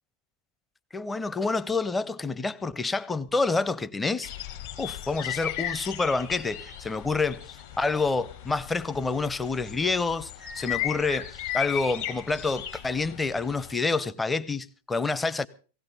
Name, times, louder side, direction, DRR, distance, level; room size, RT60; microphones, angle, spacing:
voice 1, 0.9-4.3 4.8-7.5 7.8-15.5, left 3 dB, 10° left, 0.6 m, -28 dB
sound 1, 4.2-13.7, left 11 dB, 60° left, 3.3 m, -36 dB
18.0 x 16.5 x 3.9 m
figure-of-eight pair, 90°, 0 cm